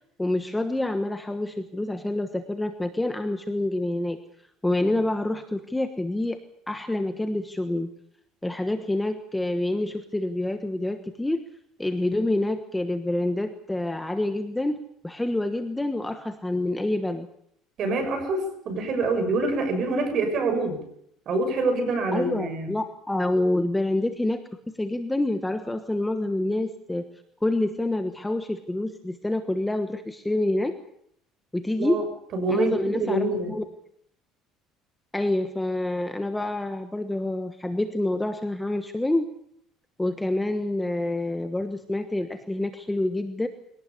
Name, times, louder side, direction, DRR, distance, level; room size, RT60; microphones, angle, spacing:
voice 1, 0.2-4.2 4.6-6.4 6.7-7.9 8.4-11.4 11.8-17.3 22.1-24.4 24.7-27.0 27.4-30.7 31.5-32.1 32.5-33.6 35.1-39.3 40.0-43.5, left 1 dB, 5° left, 7 dB, 1.3 m, -27 dB
voice 2, 17.8-20.8 21.3-22.7 31.8-32.0 32.3-33.5, right 2 dB, 40° right, 6 dB, 6.9 m, -26 dB
23.0 x 18.0 x 8.5 m, 0.71 s
cardioid pair, 165°, 0 cm